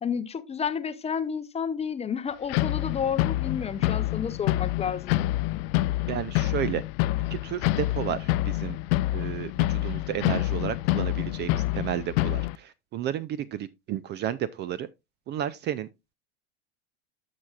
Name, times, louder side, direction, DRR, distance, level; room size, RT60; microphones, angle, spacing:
voice 1, 0.0-5.2, left 7 dB, 20° left, 0.6 m, -31 dB
sound 1, 2.5-12.6, left 17 dB, 60° left, 0.5 m, -27 dB
voice 2, 6.1-6.8 7.3-8.8 9.1-14.9 15.3-15.9, right 10 dB, 30° right, 0.4 m, -32 dB
12.0 x 5.9 x 2.3 m
hypercardioid pair, 105°, 34 cm